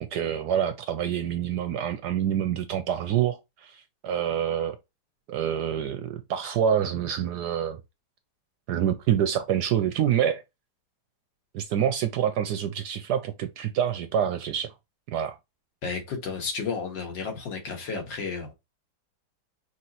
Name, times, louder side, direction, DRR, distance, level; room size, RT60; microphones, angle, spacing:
voice 1, 0.1-4.8 5.3-7.8 8.7-10.4 11.5-14.7 15.1-15.4, right 9 dB, 70° right, 1.0 m, -27 dB
voice 2, 15.8-18.5, left 5 dB, 70° left, 2.1 m, -32 dB
5.9 x 3.0 x 2.9 m
omnidirectional pair, 2.1 m